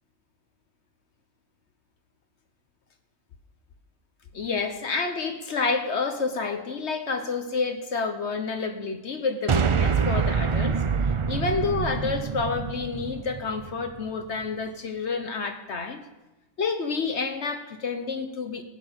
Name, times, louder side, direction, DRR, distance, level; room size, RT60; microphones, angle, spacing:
voice 1, 4.3-10.8 11.3-16.0 16.6-18.6, left 4 dB, 65° left, 7 dB, 1.2 m, -29 dB
sound 1, 9.5-13.9, right 6 dB, 55° right, 0.3 m, -26 dB
15.5 x 9.4 x 5.3 m, 1.0 s
omnidirectional pair, 1.3 m